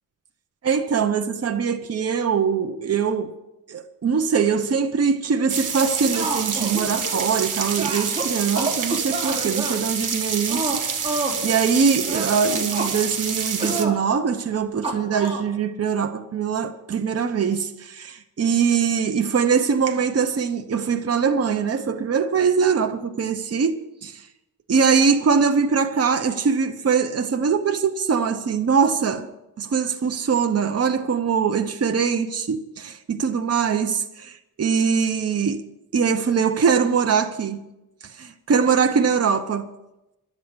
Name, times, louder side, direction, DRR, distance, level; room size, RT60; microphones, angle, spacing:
voice 1, 0.6-3.3 3.7-24.3 24.7-29.3 29.6-35.6 35.9-37.6 38.0-39.7, right 6 dB, 45° right, 0.9 m, -22 dB
sound 1, 5.5-13.8, right 6 dB, 65° right, 1.6 m, -27 dB
sound 2, 5.8-7.4 7.8-9.8 10.5-11.4 12.0-12.9 13.6-14.0 14.8-15.4, right 2 dB, 20° right, 3.9 m, -29 dB
12.0 x 8.2 x 9.6 m
wide cardioid pair, 90°, 33 cm